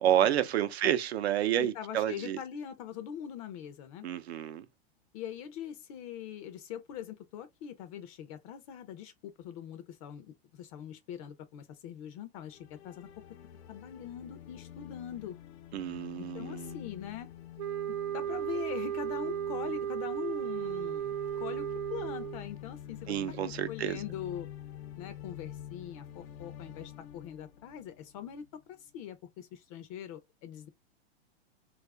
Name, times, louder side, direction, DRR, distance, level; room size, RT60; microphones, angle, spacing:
voice 1, 0.0-2.4 4.0-4.6 15.7-16.8 23.1-24.0, right 11 dB, 85° right, 0.6 m, -29 dB
voice 2, 1.6-4.1 5.1-13.1 13.7-15.4 16.2-17.3 18.1-24.5 25.0-30.7, left 9 dB, 35° left, 0.4 m, -42 dB
sound 1, 12.4-28.5, left 11 dB, 80° left, 0.6 m, -47 dB
sound 2, 17.6-22.5, right 11 dB, 40° right, 0.5 m, -35 dB
2.8 x 2.4 x 3.3 m
supercardioid pair, 145°, 31 cm